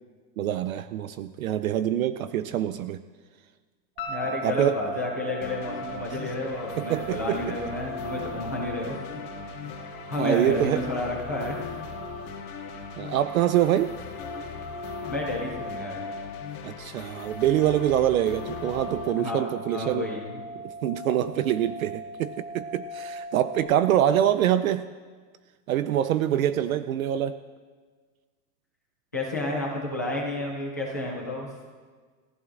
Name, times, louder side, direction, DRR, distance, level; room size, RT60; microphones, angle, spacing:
voice 1, 0.4-3.0 4.4-4.8 6.8-7.6 10.2-10.8 13.0-14.0 16.6-20.1 20.6-24.8 25.7-27.4, right 11 dB, 60° right, 12 dB, 0.5 m, -25 dB
sound 1, 4.0-16.3, left 2 dB, 40° left, 2.2 m, -46 dB
sound 2, 4.0-23.6, right 1 dB, 30° right, 1.4 m, -40 dB
voice 2, 4.1-9.0 9.4-9.7 10.1-11.6 12.7-12.8 15.1-16.0 19.2-19.4 19.7-20.4 29.1-31.5, left 1 dB, 10° left, -3 dB, 0.4 m, -31 dB
sound 3, 5.4-19.1, left 7 dB, 60° left, 2.6 m, -39 dB
29.0 x 15.0 x 2.5 m, 1.5 s
supercardioid pair, 180°, 49 cm